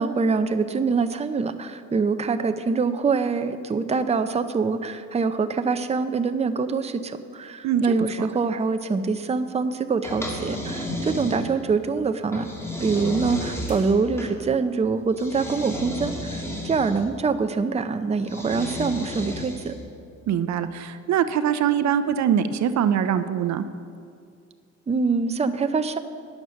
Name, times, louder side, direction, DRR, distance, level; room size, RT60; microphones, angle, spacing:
voice 1, 0.0-12.5 12.8-19.8 24.9-26.0, right 4 dB, 20° right, 9 dB, 0.6 m, -24 dB
sound 1, 10.0-11.7 12.3-14.3 15.2-17.0 18.2-19.8, equal, 10° left, 2.0 m, -33 dB
sound 2, 13.6-14.7, left 2 dB, 25° left, 2.4 m, -50 dB
voice 2, 20.3-23.7, right 9 dB, 65° right, 12 dB, 0.6 m, -23 dB
10.5 x 7.2 x 6.3 m, 2.4 s
cardioid pair, 90°, 30 cm